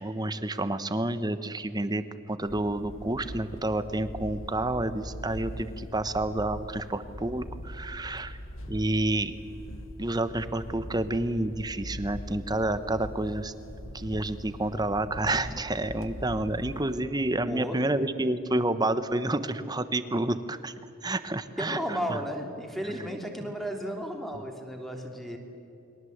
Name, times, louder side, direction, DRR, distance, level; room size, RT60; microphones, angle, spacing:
voice 1, 0.0-8.4 8.7-9.4 10.0-13.5 13.9-20.7 21.0-22.2, right 2 dB, 20° right, 11 dB, 1.1 m, -29 dB
sound 1, 2.4-17.0, equal, 65° left, 1.4 m, -42 dB
voice 2, 17.5-17.9 21.6-25.4, equal, ahead, 3 dB, 3.0 m, -34 dB
29.5 x 23.0 x 8.0 m, 2.8 s
head